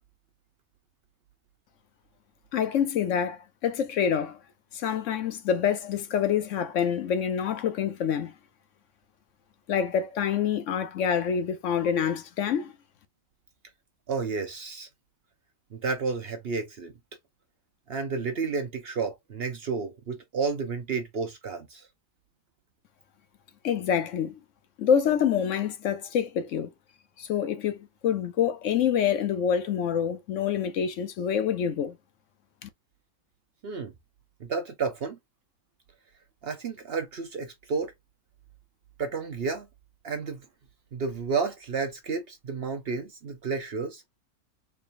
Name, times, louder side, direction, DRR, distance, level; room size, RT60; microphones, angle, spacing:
voice 1, 2.5-4.4 4.7-8.3 9.7-12.7 23.6-24.3 24.8-26.7 27.2-31.9 32.6-32.7, left 8 dB, 65° left, 0.9 m, -26 dB
voice 2, 14.1-14.9 15.7-16.9 17.9-21.9 33.6-33.9 34.4-35.2 36.4-37.9 39.0-39.7 40.0-40.4 40.9-44.0, right 5 dB, 55° right, 0.7 m, -31 dB
4.1 x 3.3 x 2.5 m
omnidirectional pair, 1.5 m